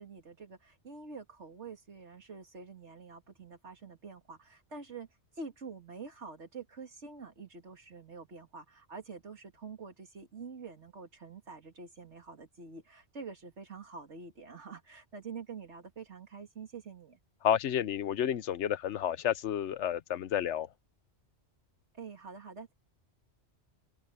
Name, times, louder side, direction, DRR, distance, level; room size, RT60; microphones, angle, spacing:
voice 1, 0.0-5.1 5.3-17.2 21.9-22.7, right 4 dB, 80° right, 2.4 m, -47 dB
voice 2, 17.4-20.7, left 10 dB, 90° left, 1.0 m, -30 dB
open air
omnidirectional pair, 1.2 m